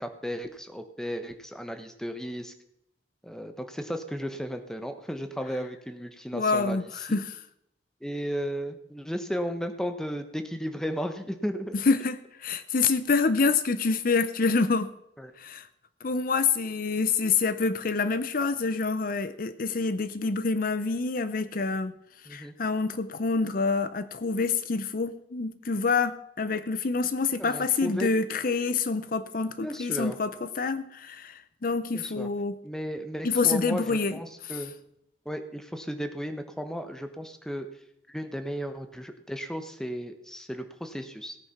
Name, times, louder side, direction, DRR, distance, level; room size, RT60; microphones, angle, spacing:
voice 1, 0.0-2.5 3.2-6.8 7.1-7.2 8.0-11.8 15.2-15.3 22.3-22.5 27.4-28.1 29.6-30.2 31.9-32.3 32.6-34.7 35.2-37.7 38.1-41.4, equal, 5° left, 7 dB, 1.1 m, -34 dB
voice 2, 6.3-7.4 11.9-14.9 15.4-15.7 16.0-22.0 22.3-32.6 33.2-34.2 34.4-34.6, left 4 dB, 50° left, 13 dB, 0.6 m, -27 dB
17.5 x 9.3 x 5.8 m, 0.79 s
head